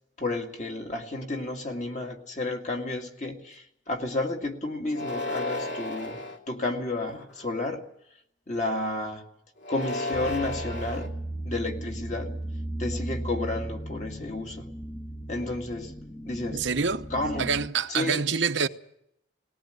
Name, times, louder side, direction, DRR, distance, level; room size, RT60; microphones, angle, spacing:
voice 1, 0.2-7.8 8.5-9.2 9.7-12.3 12.8-14.7 15.3-15.9 16.3-16.7 17.1-17.5 17.9-18.2, left 2 dB, 40° left, 2.2 m, -32 dB
sound 1, 4.9-6.4 7.1-7.6 9.6-11.1, left 2 dB, 65° left, 2.8 m, -33 dB
sound 2, 10.1-17.7, right 1 dB, 10° left, 0.8 m, -36 dB
voice 2, 16.5-17.1 17.4-18.7, right 5 dB, 75° right, 1.0 m, -26 dB
19.5 x 18.0 x 9.3 m
head